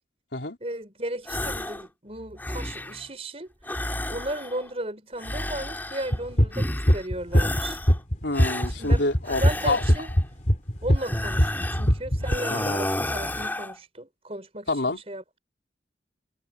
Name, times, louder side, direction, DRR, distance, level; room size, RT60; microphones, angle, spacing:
voice 1, 0.6-3.5 4.1-7.8 8.8-10.1 10.8-14.7 15.1-15.2, right 1 dB, 35° right, 5.2 m, -35 dB
sound 1, 1.3-1.9 2.2-3.1 3.6-4.7 5.2-6.2 6.5-7.1 7.3-8.0 8.3-10.2 11.0-11.9 12.2-13.8, left 1 dB, 10° left, 4.1 m, -32 dB
sound 2, 6.1-12.4, equal, 40° left, 3.2 m, -21 dB
voice 2, 8.2-9.9 12.5-12.8 14.7-15.0, left 2 dB, 85° left, 3.7 m, -28 dB
head